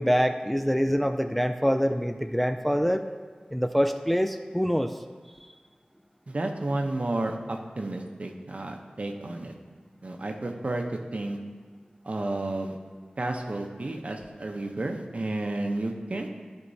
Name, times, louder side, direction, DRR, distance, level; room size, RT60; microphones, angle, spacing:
voice 1, 0.0-3.0 3.5-4.9, equal, 5° left, 7 dB, 0.3 m, -25 dB
voice 2, 6.3-9.5 10.0-10.8 11.1-11.4 12.0-12.8 13.2-16.3, right 2 dB, 55° right, 3 dB, 0.7 m, -31 dB
11.0 x 4.5 x 2.7 m, 1.5 s
wide cardioid pair, 45°, 3 cm